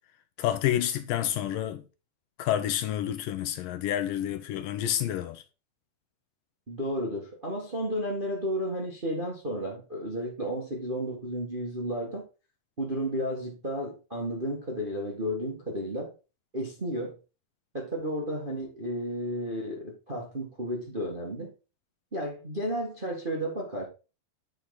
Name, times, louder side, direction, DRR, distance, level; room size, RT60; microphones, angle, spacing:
voice 1, 0.4-1.8 2.4-5.4, left 11 dB, 75° left, 2.3 m, -29 dB
voice 2, 6.7-12.3 12.8-16.1 16.5-17.2 17.7-21.5 22.1-23.9, equal, 25° right, 1.1 m, -32 dB
8.7 x 5.8 x 4.3 m
omnidirectional pair, 4.1 m